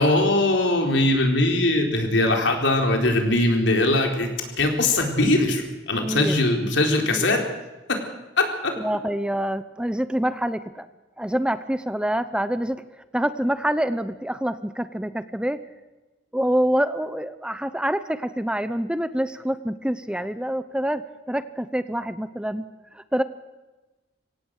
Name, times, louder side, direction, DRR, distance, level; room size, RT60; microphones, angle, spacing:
voice 1, 0.0-4.3 4.6-7.4 7.9-8.0 8.4-8.7, left 2 dB, 80° left, 3 dB, 4.2 m, -21 dB
voice 2, 6.0-6.4 7.1-7.3 8.8-10.9 11.2-12.8 13.1-15.6 16.3-21.0 21.3-22.7 22.9-23.2, right 1 dB, 5° right, 12 dB, 0.7 m, -26 dB
24.5 x 17.5 x 6.6 m, 1.1 s
head